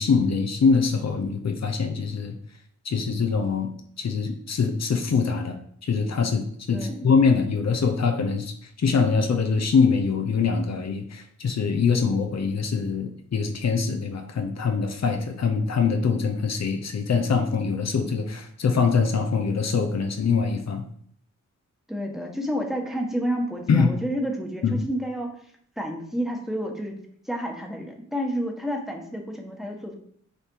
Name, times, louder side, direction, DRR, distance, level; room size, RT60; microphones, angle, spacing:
voice 1, 0.0-2.4 2.8-3.7 4.0-5.6 5.8-8.5 8.8-20.8 23.7-23.9 24.6-24.8, left 5 dB, 65° left, 4 dB, 0.9 m, -23 dB
voice 2, 6.7-7.1 21.9-25.3 25.8-27.0 27.2-30.0, equal, ahead, 1 dB, 1.4 m, -30 dB
6.7 x 4.3 x 4.6 m, 0.63 s
wide cardioid pair, 85°, 29 cm